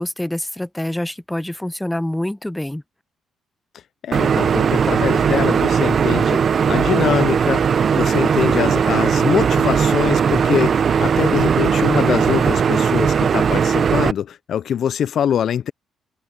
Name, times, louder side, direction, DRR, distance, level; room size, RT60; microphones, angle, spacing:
voice 1, 0.0-2.8, left 1 dB, 5° left, 0.7 m, -26 dB
voice 2, 4.0-7.6 7.9-15.7, left 9 dB, 65° left, 0.3 m, -23 dB
sound 1, 4.1-14.1, right 7 dB, 50° right, 0.7 m, -18 dB
cardioid pair, 90°, 0 cm